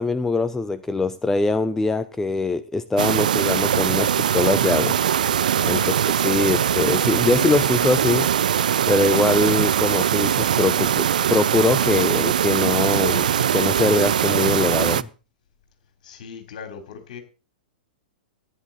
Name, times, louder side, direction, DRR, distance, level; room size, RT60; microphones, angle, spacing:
voice 1, 0.0-4.9 5.6-8.3 8.9-15.1, left 3 dB, 10° left, 12 dB, 0.6 m, -23 dB
sound 1, 3.0-15.0, right 9 dB, 65° right, 0.5 m, -21 dB
voice 2, 16.0-17.2, left 6 dB, 55° left, 5 dB, 3.7 m, -39 dB
14.0 x 10.5 x 4.2 m, 0.33 s
figure-of-eight pair, 100°, 5 cm